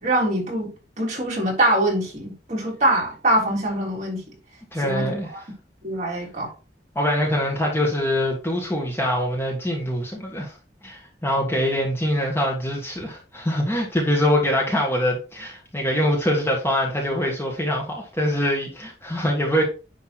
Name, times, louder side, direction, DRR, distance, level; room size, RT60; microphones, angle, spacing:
voice 1, 0.0-0.7 1.0-4.2 4.8-5.4 5.8-6.5, right 1 dB, 45° right, 3.8 m, -23 dB
voice 2, 4.7-5.4 7.0-10.5 10.8-19.6, equal, 15° left, 1.8 m, -24 dB
10.0 x 3.6 x 4.4 m
head